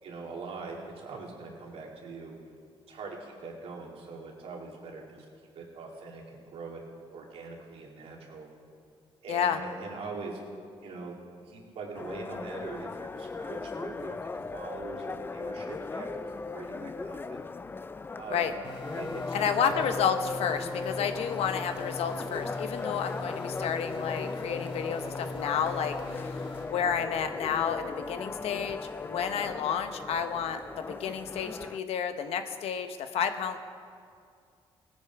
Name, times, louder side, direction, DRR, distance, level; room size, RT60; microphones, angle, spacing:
voice 1, 0.0-2.4 2.9-5.3 5.5-6.8 7.1-8.5 9.2-10.4 10.8-11.1 11.5-14.2 14.5-16.1 16.5-17.4 18.2-18.5 18.9-19.7, right 4 dB, 75° right, -1 dB, 2.5 m, -42 dB
voice 2, 9.3-9.6 18.3-18.5 19.3-26.4 26.7-33.6, left 7 dB, 85° left, 8 dB, 0.9 m, -31 dB
sound 1, 11.9-31.8, left 4 dB, 20° left, 0.3 m, -38 dB
sound 2, 18.6-26.6, left 2 dB, 65° left, 4.1 m, -42 dB
17.5 x 9.9 x 4.7 m, 2.3 s
cardioid pair, 85°, 10 cm